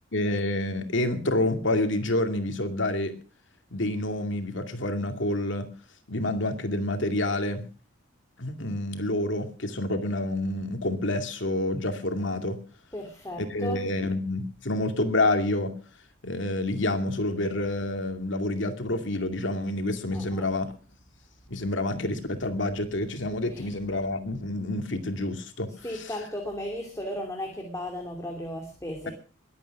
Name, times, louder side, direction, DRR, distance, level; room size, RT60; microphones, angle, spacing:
voice 1, 0.1-3.1 3.7-5.7 6.1-7.6 8.4-12.6 13.4-15.7 16.2-20.7 21.5-25.7, left 1 dB, 65° left, 6 dB, 2.4 m, -28 dB
voice 2, 12.9-13.9 20.1-20.5 23.5-23.7 25.8-29.1, left 1 dB, 15° left, 2 dB, 2.8 m, -35 dB
22.0 x 8.8 x 6.0 m, 0.39 s
head